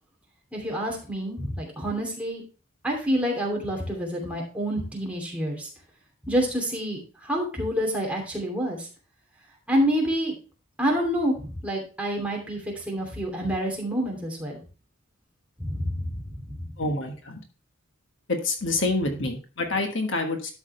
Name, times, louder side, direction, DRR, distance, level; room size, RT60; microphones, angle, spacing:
voice 1, 0.5-2.4 2.8-5.7 6.3-8.9 9.7-10.3 10.8-14.6 15.6-16.2 16.5-16.6, equal, 5° right, -2 dB, 2.8 m, -27 dB
voice 2, 16.8-17.4 18.3-20.5, left 2 dB, 60° left, 4 dB, 1.5 m, -27 dB
12.0 x 6.1 x 3.3 m, 0.35 s
head